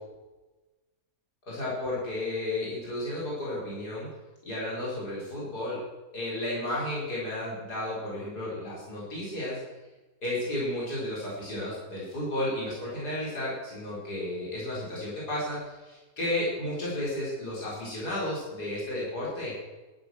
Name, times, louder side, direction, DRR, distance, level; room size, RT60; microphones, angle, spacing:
voice 1, 1.5-4.1 4.4-5.8 6.1-9.6 10.2-19.5, left 1 dB, 65° left, -7 dB, 6.1 m, -33 dB
13.0 x 12.5 x 6.5 m, 1.2 s
omnidirectional pair, 1.8 m